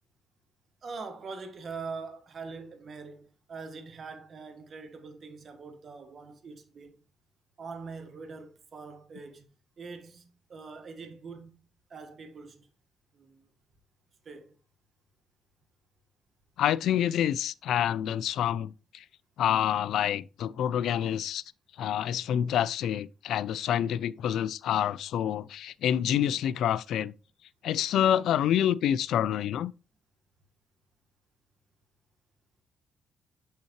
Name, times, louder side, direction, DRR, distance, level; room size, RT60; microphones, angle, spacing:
voice 1, 0.8-7.0 7.6-9.5 9.8-11.6 11.9-12.7 13.1-13.5 14.2-14.5, right 4 dB, 45° right, 1.3 m, -43 dB
voice 2, 16.6-19.0 19.4-21.4 21.8-27.1 27.6-29.7, left 10 dB, 75° left, 0.3 m, -27 dB
6.4 x 5.6 x 2.9 m
cardioid pair, 90°, 0 cm